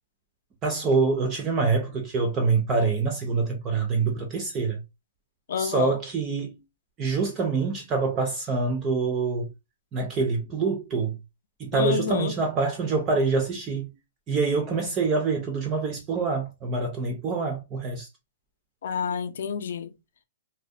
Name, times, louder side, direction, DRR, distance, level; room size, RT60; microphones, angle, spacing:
voice 1, 0.6-4.8 5.6-6.6 7.0-9.5 9.9-11.2 11.6-13.9 14.3-18.1, right 4 dB, 15° right, 0.3 m, -25 dB
voice 2, 5.5-6.0 11.7-12.3 18.8-19.9, left 7 dB, 60° left, 0.4 m, -28 dB
2.6 x 2.0 x 2.4 m
hypercardioid pair, 175°, 0 cm